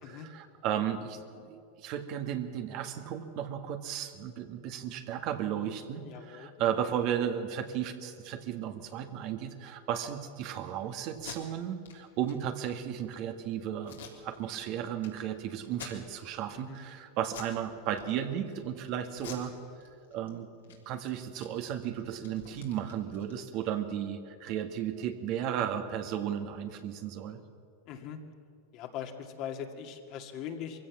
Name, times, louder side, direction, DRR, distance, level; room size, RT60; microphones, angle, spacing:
voice 1, 0.0-19.5 20.1-27.4, right 9 dB, 50° right, 6 dB, 1.8 m, -34 dB
voice 2, 6.1-6.8 16.5-16.8 27.9-28.2 28.7-30.8, left 8 dB, 50° left, 4 dB, 2.3 m, -41 dB
Packing tape duct tape, 11.1-11.4 11.8-11.9 12.2-12.3 12.8-13.1 13.8-14.6 15.0-15.1 15.7-16.4 16.7-17.0 17.3-17.6 17.9-18.5 19.1-20.3 20.6-20.8 21.0-23.7, left 8 dB, 85° left, 3.6 m, -48 dB
22.5 x 16.0 x 7.3 m, 2.4 s
hypercardioid pair, 110°, 0 cm